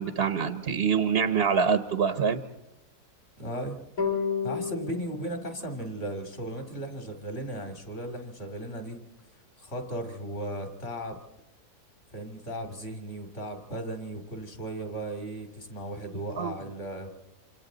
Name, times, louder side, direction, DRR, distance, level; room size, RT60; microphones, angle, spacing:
voice 1, 0.0-2.4 16.4-16.5, right 6 dB, 50° right, 11 dB, 0.9 m, -25 dB
voice 2, 3.4-3.8 4.4-9.0 9.6-11.2 12.1-17.1, right 1 dB, 40° left, 5 dB, 2.7 m, -36 dB
sound 1, 4.0-7.2, left 6 dB, 65° left, 5.5 m, -34 dB
27.5 x 26.0 x 3.9 m, 1.0 s
omnidirectional pair, 1.6 m